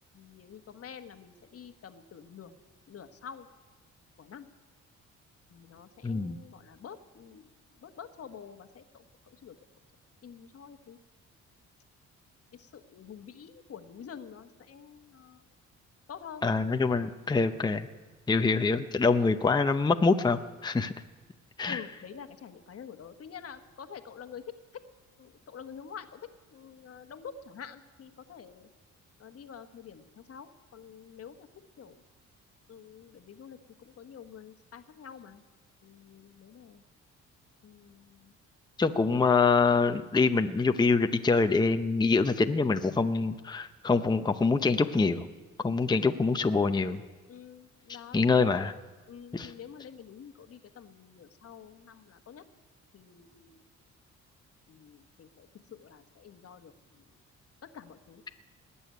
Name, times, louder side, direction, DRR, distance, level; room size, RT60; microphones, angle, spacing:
voice 1, 0.1-2.6 2.9-3.5 4.2-4.5 5.5-7.5 7.8-9.6 10.2-11.0 12.6-15.4 16.1-16.5 21.7-24.4 24.7-24.8 25.2-26.2 26.5-28.7 29.2-31.5 31.8-32.0 32.7-35.4 35.8-36.8 37.6-38.3 45.9-46.2 47.3-48.6 49.1-52.4 52.9-53.6 54.7-57.0 57.6-58.2, left 7 dB, 50° left, 8 dB, 1.2 m, -48 dB
voice 2, 6.0-6.4 16.4-17.9 18.3-20.9 21.6-21.8 38.8-45.3 45.6-47.0 48.1-48.7 49.3-49.5, left 4 dB, 15° left, 7 dB, 0.7 m, -25 dB
19.5 x 7.0 x 9.3 m, 1.3 s
cardioid pair, 90°, 30 cm